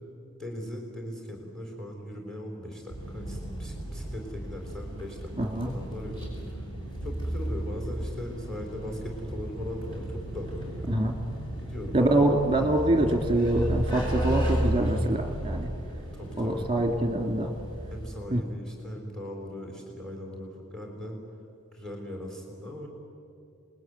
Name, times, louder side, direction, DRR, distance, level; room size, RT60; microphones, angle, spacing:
voice 1, 0.4-6.3 7.0-11.2 11.6-12.3 16.1-16.7 17.9-21.2 21.7-22.9, left 1 dB, ahead, 1 dB, 4.0 m, -39 dB
sound 1, 2.9-18.2, right 1 dB, 20° left, 6.9 m, -34 dB
voice 2, 5.4-5.7 10.9-11.2 11.9-15.7 16.4-17.5 18.3-18.4, right 1 dB, 25° right, 4 dB, 2.6 m, -25 dB
27.5 x 21.5 x 9.6 m, 2.5 s
head